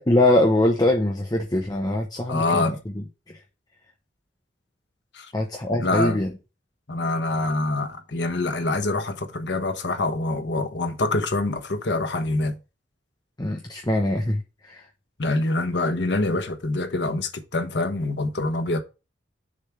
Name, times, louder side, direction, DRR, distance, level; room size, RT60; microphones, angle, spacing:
voice 1, 0.0-3.4 5.3-6.3 13.4-14.8, left 1 dB, 20° left, 0.9 m, -23 dB
voice 2, 2.3-2.8 5.1-5.3 5.7-6.2 6.9-12.6 15.2-18.8, left 2 dB, 65° left, 1.1 m, -25 dB
6.8 x 3.5 x 5.8 m
head